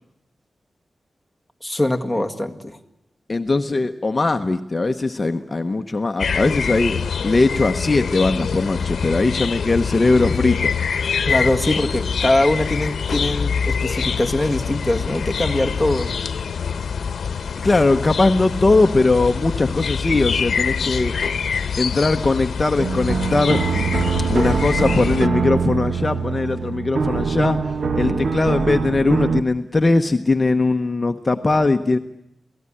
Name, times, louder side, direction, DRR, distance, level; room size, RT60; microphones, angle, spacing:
voice 1, 1.6-2.8 3.7-3.8 11.3-16.1 28.0-28.3, left 1 dB, ahead, 3 dB, 1.9 m, -22 dB
voice 2, 3.3-10.7 17.6-21.1 21.8-23.6 24.3-27.6 27.9-32.0, left 3 dB, 25° left, 6 dB, 1.0 m, -20 dB
sound 1, 6.2-25.3, left 6 dB, 80° left, 0.9 m, -25 dB
sound 2, 22.8-29.4, right 5 dB, 75° right, 1.1 m, -23 dB
28.5 x 18.0 x 10.0 m, 0.79 s
wide cardioid pair, 145°, 0 cm